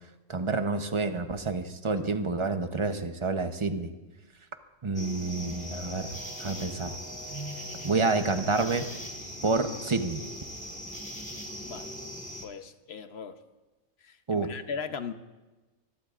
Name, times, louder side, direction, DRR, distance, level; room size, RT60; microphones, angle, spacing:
voice 1, 0.3-3.9 4.8-6.1 6.4-6.9 7.8-8.8 9.4-10.2 14.3-14.5, right 3 dB, 25° right, 7 dB, 0.7 m, -28 dB
sound 1, 4.7-4.8 5.1-11.3, equal, 75° left, 2.5 m, -48 dB
Brass instrument, 4.8-9.1, equal, 75° right, 6.9 m, -50 dB
sound 2, 5.0-12.5, equal, 5° left, 1.6 m, -41 dB
voice 2, 11.6-11.9 12.4-13.4 14.0-15.1, left 6 dB, 55° left, 9 dB, 1.0 m, -38 dB
24.5 x 21.0 x 2.5 m, 1.2 s
omnidirectional pair, 1.4 m